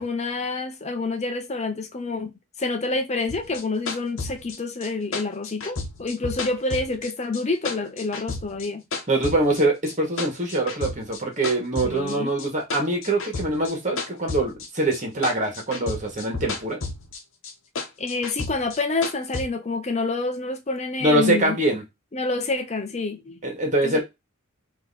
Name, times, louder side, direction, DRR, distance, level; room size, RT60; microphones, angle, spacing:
voice 1, 0.0-2.3 2.6-8.8 11.8-12.3 18.0-21.6 22.1-23.4 23.8-24.0, left 3 dB, 35° left, 0.6 m, -28 dB
sound 1, 3.3-7.4 7.7-9.6 9.9-11.2 11.4-15.0 15.2-17.2 17.4-19.5, left 3 dB, 70° left, 0.9 m, -32 dB
voice 2, 9.1-16.8 21.0-21.8 23.4-24.0, right 2 dB, 40° right, 1.7 m, -24 dB
3.9 x 2.9 x 4.1 m
head